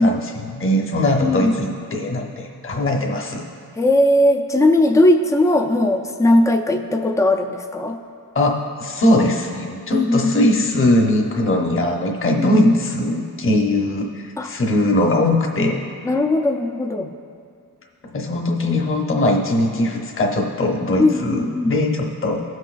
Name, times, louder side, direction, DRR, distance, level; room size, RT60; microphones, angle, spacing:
voice 1, 0.0-3.4 8.3-15.8 18.1-22.4, left 1 dB, 35° left, 0 dB, 0.9 m, -20 dB
voice 2, 1.2-1.6 3.8-8.0 9.9-10.5 12.4-12.8 14.4-14.5 16.0-17.1 21.0-21.7, left 1 dB, 10° left, 5 dB, 0.4 m, -18 dB
17.0 x 6.3 x 2.5 m, 2.3 s
wide cardioid pair, 170°, 37 cm